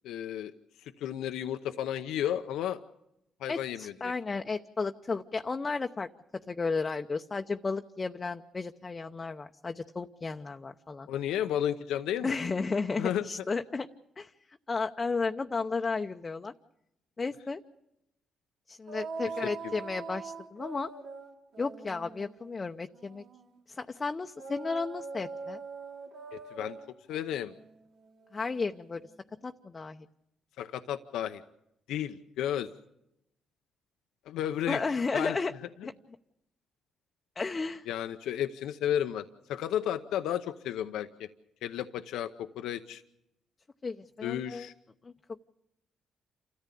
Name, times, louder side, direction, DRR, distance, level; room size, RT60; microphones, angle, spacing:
voice 1, 0.0-0.5 0.8-2.8 3.4-4.1 11.1-12.3 13.0-13.2 19.4-19.8 26.3-26.8 27.1-27.5 30.6-31.4 31.9-32.7 34.3-34.8 35.1-35.4 37.9-41.3 41.6-43.0 44.2-44.7, left 10 dB, 85° left, 8 dB, 0.8 m, -33 dB
voice 2, 3.5-6.1 6.5-11.1 12.2-13.9 14.2-14.3 14.7-16.5 17.2-17.6 18.7-20.9 21.6-23.2 23.7-25.6 28.3-29.0 29.4-30.1 34.7-35.5 35.8-35.9 37.4-37.9 43.8-44.7 45.0-45.1, left 4 dB, 30° left, 5 dB, 0.8 m, -33 dB
sound 1, 18.9-23.5 24.4-29.1, right 4 dB, 60° right, 2.9 m, -43 dB
28.5 x 14.0 x 8.5 m, 0.84 s
cardioid pair, 90°, 0 cm